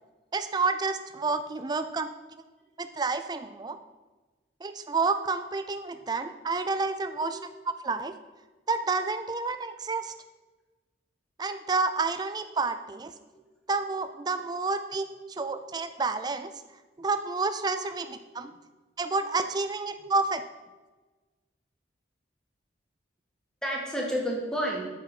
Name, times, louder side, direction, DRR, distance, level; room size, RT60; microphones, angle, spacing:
voice 1, 0.3-2.1 2.8-3.8 4.6-7.4 7.7-8.1 8.7-10.1 11.4-13.1 13.7-16.5 17.0-18.5 19.0-20.4, right 3 dB, 20° right, 9 dB, 0.4 m, -29 dB
voice 2, 23.6-24.9, equal, 5° left, -2 dB, 1.7 m, -31 dB
7.4 x 6.4 x 5.5 m, 1.2 s
head